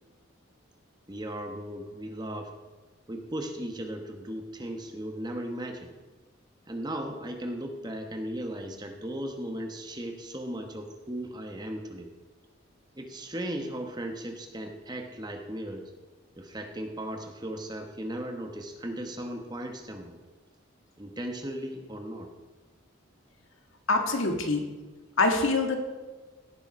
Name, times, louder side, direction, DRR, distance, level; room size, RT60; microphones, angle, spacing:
voice 1, 1.1-2.5 3.1-5.9 6.7-12.1 13.0-15.9 16.4-20.2 21.0-22.3, right 1 dB, 20° right, 4 dB, 1.0 m, -37 dB
voice 2, 23.9-24.6 25.2-25.8, left 3 dB, 75° left, 4 dB, 1.6 m, -24 dB
16.5 x 6.9 x 5.3 m, 1.3 s
head